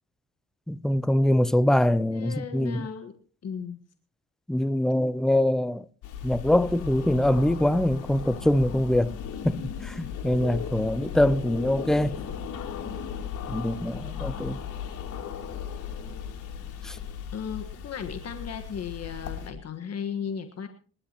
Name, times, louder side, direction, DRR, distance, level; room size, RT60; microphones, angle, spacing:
voice 1, 0.7-2.9 4.5-5.9 6.2-9.1 9.4-12.2 13.5-14.6 16.8-17.0, left 1 dB, ahead, 0.6 m, -24 dB
voice 2, 2.1-3.2 3.4-3.8 17.3-20.7, left 7 dB, 55° left, 1.6 m, -35 dB
sound 1, 6.0-19.5, left 8 dB, 85° left, 3.3 m, -36 dB
26.5 x 12.0 x 3.0 m
cardioid pair, 90°, 30 cm